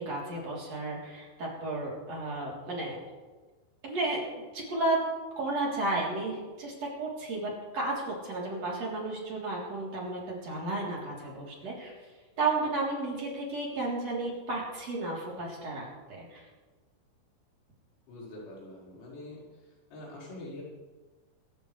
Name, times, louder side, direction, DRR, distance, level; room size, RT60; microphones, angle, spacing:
voice 1, 0.0-3.0 3.8-4.2 4.5-5.0 5.4-11.9 12.4-16.5, right 2 dB, 35° right, -4 dB, 4.0 m, -33 dB
voice 2, 18.1-19.4 19.9-20.6, left 2 dB, 70° left, -6 dB, 7.4 m, -44 dB
25.5 x 13.0 x 3.3 m, 1.3 s
omnidirectional pair, 5.7 m